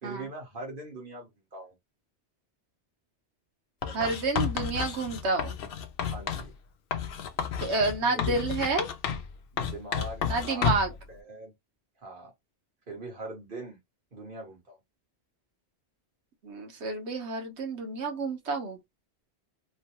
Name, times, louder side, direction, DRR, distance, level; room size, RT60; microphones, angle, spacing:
voice 1, 0.0-1.7 3.8-4.2 6.1-6.5 7.9-8.5 9.5-11.5 12.0-12.3 12.9-13.8 14.1-14.8, right 2 dB, 50° right, 1.5 m, -42 dB
Writing, 3.8-6.5 6.9-9.3 9.6-11.0, left 7 dB, 65° left, 0.7 m, -31 dB
voice 2, 3.9-5.6 7.6-8.9 10.2-10.9 16.4-18.8, right 3 dB, 85° right, 1.1 m, -29 dB
3.1 x 2.2 x 2.9 m
omnidirectional pair, 1.1 m